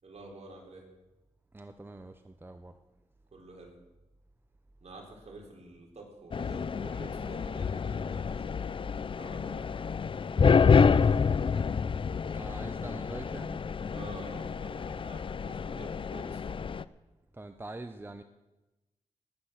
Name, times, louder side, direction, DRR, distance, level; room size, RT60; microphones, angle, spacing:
voice 1, 0.0-0.8 3.3-3.7 4.8-10.0 10.4-11.2 13.9-16.6, right 3 dB, 55° right, 0 dB, 4.0 m, -49 dB
voice 2, 1.5-2.8 12.3-13.6 17.3-18.2, right 2 dB, 15° right, 8 dB, 0.8 m, -44 dB
sound 1, 6.3-16.8, left 6 dB, 45° left, 0.4 m, -28 dB
19.5 x 8.7 x 5.9 m, 1.0 s
cardioid pair, 75°, 13 cm